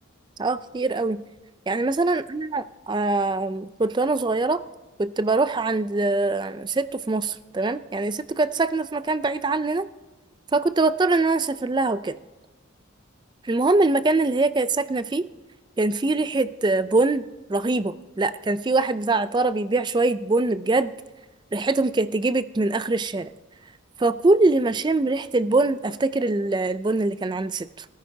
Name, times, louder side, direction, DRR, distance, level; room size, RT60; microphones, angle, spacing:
voice 1, 0.4-1.2 1.7-4.6 5.0-9.9 10.5-12.2 13.4-15.3 15.8-20.9 21.5-23.3 24.0-27.9, right 3 dB, 20° right, 14 dB, 0.3 m, -23 dB
16.0 x 14.0 x 2.8 m, 1.2 s
head